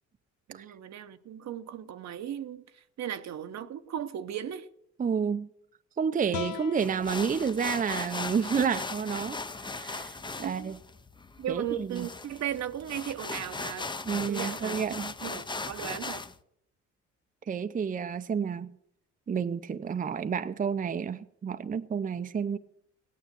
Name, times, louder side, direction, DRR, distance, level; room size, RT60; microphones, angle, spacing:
voice 1, 0.5-4.7 10.4-10.7 11.4-13.9 14.3-14.8 15.2-16.2, right 10 dB, 65° right, 0.9 m, -36 dB
voice 2, 5.0-5.5 6.0-10.8 11.5-12.1 14.0-15.1 17.5-18.7 19.3-22.6, right 6 dB, 25° right, 0.6 m, -30 dB
sound 1, 6.3-9.5, left 8 dB, 80° left, 0.7 m, -43 dB
sound 2, 6.8-16.3, left 3 dB, 15° left, 0.6 m, -38 dB
16.0 x 9.3 x 6.8 m
cardioid pair, 90°, 30 cm